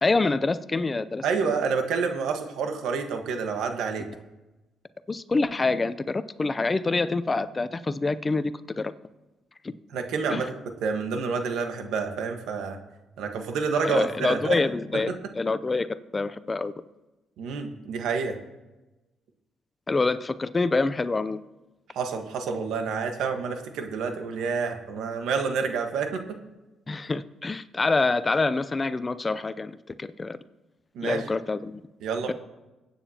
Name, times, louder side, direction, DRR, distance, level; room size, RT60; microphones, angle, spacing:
voice 1, 0.0-1.6 5.1-8.9 9.6-9.7 10.3-10.4 13.8-16.7 19.9-21.4 26.9-30.4 31.0-31.8 32.3-32.4, left 3 dB, 25° left, 14 dB, 0.5 m, -26 dB
voice 2, 1.2-4.1 9.9-10.5 10.8-12.8 13.2-14.6 14.9-15.2 17.4-18.4 21.9-26.2 30.9-31.3 32.0-32.3, right 5 dB, 85° right, 5 dB, 1.4 m, -28 dB
22.0 x 8.9 x 2.9 m, 1.1 s
cardioid pair, 90°, 0 cm